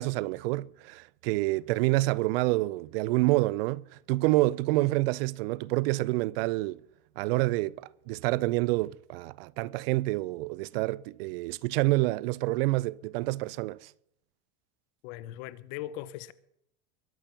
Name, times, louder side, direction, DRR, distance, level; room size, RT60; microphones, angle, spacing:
voice 1, 0.0-6.8 7.2-13.9, right 20 dB, 60° right, 0.5 m, -28 dB
voice 2, 15.0-16.3, left 13 dB, 50° left, 0.9 m, -39 dB
22.0 x 8.5 x 5.9 m
supercardioid pair, 150°, 33 cm